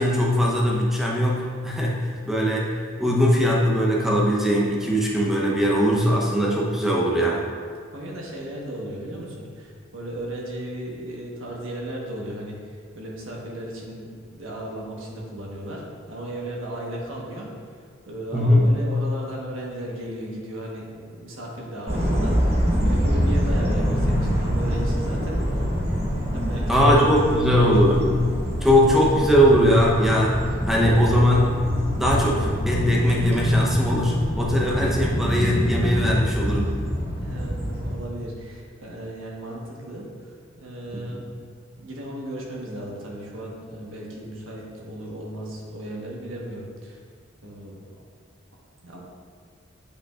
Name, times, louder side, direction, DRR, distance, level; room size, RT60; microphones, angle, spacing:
voice 1, 0.0-2.7 3.0-7.5 18.3-18.7 26.7-28.0 28.6-31.6 32.0-36.7 40.9-41.2, equal, ahead, -3 dB, 0.8 m, -20 dB
voice 2, 7.9-17.5 18.0-22.4 22.8-25.4 26.3-27.7 37.2-40.3 40.6-41.2 41.8-47.0 47.4-47.8 48.8-49.0, right 1 dB, 85° right, -2 dB, 1.3 m, -35 dB
sound 1, 21.9-37.9, equal, 30° right, 1.3 m, -25 dB
8.5 x 5.3 x 2.5 m, 2.1 s
head